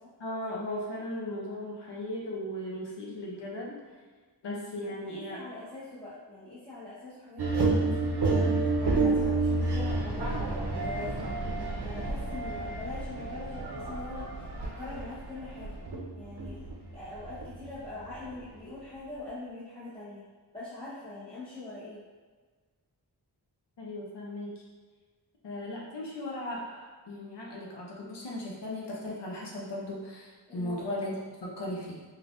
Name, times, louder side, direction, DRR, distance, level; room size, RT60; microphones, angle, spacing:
voice 1, 0.2-3.8 4.4-5.4 23.8-24.6 25.4-31.1 31.4-32.0, left 1 dB, 80° left, -3 dB, 0.7 m, -37 dB
voice 2, 4.8-11.4 11.8-14.3 14.6-15.8 16.1-20.2 20.5-22.0 30.5-30.8, left 2 dB, 15° left, -14 dB, 0.9 m, -43 dB
sound 1, 7.4-18.4, right 3 dB, 70° right, 0.6 m, -30 dB
3.2 x 2.4 x 2.5 m, 1.4 s
wide cardioid pair, 80°, 41 cm